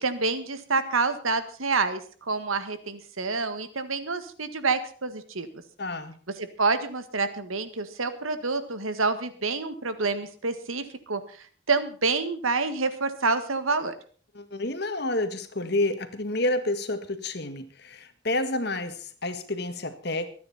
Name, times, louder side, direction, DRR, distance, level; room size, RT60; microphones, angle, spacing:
voice 1, 0.0-2.0 2.3-5.5 6.4-13.9, right 4 dB, 85° right, 11 dB, 1.7 m, -28 dB
voice 2, 5.8-6.2 14.3-20.3, left 2 dB, 50° left, 9 dB, 1.7 m, -29 dB
25.0 x 9.5 x 4.1 m, 0.42 s
head